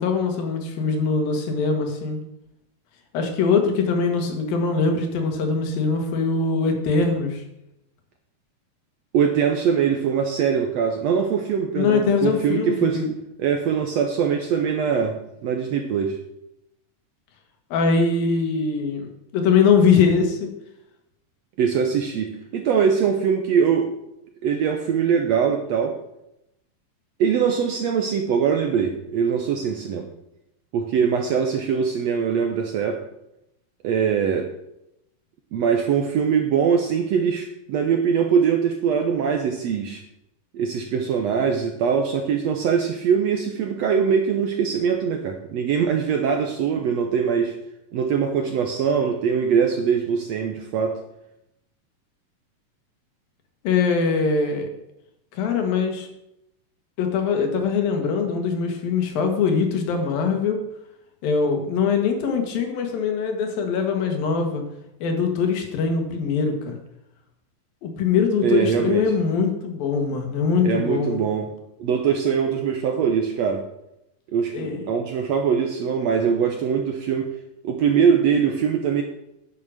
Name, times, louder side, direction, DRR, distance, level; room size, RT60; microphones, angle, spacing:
voice 1, 0.0-2.2 3.1-7.4 11.8-13.1 17.7-20.5 53.6-54.7 55.3-56.1 57.0-60.6 61.2-64.6 65.0-66.8 67.8-71.2 74.5-74.8, left 5 dB, 85° left, 4 dB, 3.5 m, -22 dB
voice 2, 9.1-13.0 13.4-16.2 21.6-23.9 24.4-25.9 27.2-30.1 30.7-33.0 33.8-34.5 35.5-40.0 40.5-47.5 47.9-51.0 68.4-69.0 70.6-71.5 71.8-73.6 74.3-77.3 77.6-79.0, right 7 dB, 75° right, 4 dB, 1.6 m, -22 dB
9.8 x 8.0 x 6.4 m, 0.85 s
omnidirectional pair, 4.0 m